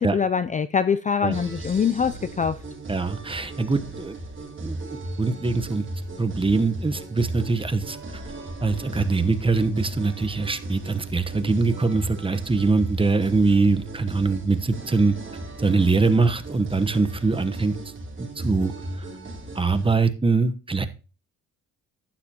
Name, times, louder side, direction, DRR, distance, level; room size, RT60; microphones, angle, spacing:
voice 1, 0.0-2.6, left 6 dB, 25° left, 0.4 m, -23 dB
sound 1, 1.3-19.9, right 1 dB, 40° right, 3.8 m, -36 dB
voice 2, 2.9-4.2 4.6-4.8 5.2-5.8 6.2-8.2 8.6-15.2 15.6-17.8 18.2-18.7 19.5-20.9, right 3 dB, 15° right, 1.1 m, -23 dB
11.5 x 9.5 x 2.9 m
cardioid pair, 90°, 30 cm